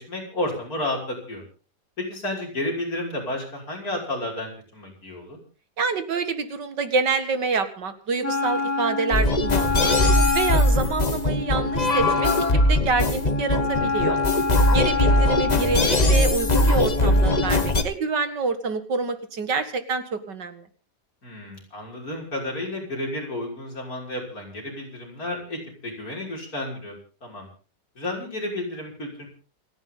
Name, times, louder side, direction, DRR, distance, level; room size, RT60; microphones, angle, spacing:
voice 1, 0.0-1.4 2.0-5.4 15.9-16.2 21.2-27.5 28.0-29.3, left 1 dB, 55° left, -1 dB, 6.7 m, -32 dB
voice 2, 5.8-9.9 10.3-14.2 14.7-20.7, right 4 dB, 80° right, 9 dB, 2.5 m, -27 dB
Wind instrument woodwind instrument, 8.2-17.8, left 3 dB, 10° left, 2.9 m, -27 dB
sound 1, 9.1-17.8, left 1 dB, 25° left, 1.3 m, -21 dB
28.0 x 10.5 x 3.9 m, 0.37 s
omnidirectional pair, 1.8 m